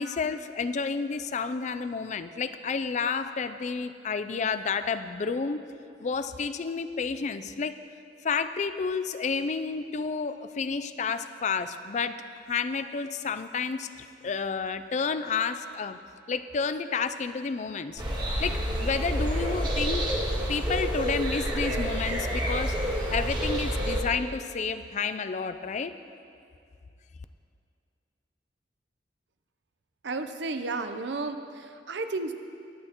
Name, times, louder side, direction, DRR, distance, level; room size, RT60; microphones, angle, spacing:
voice 1, 0.0-5.6 6.0-7.7 8.2-13.9 14.2-16.0 16.3-18.0 18.4-20.1 20.5-26.0, left 5 dB, 40° left, 11 dB, 0.4 m, -30 dB
sound 1, 18.0-24.0, equal, 25° right, 1.6 m, -28 dB
voice 2, 30.0-32.3, right 3 dB, 80° right, 8 dB, 0.7 m, -33 dB
21.5 x 8.7 x 3.0 m, 2.4 s
head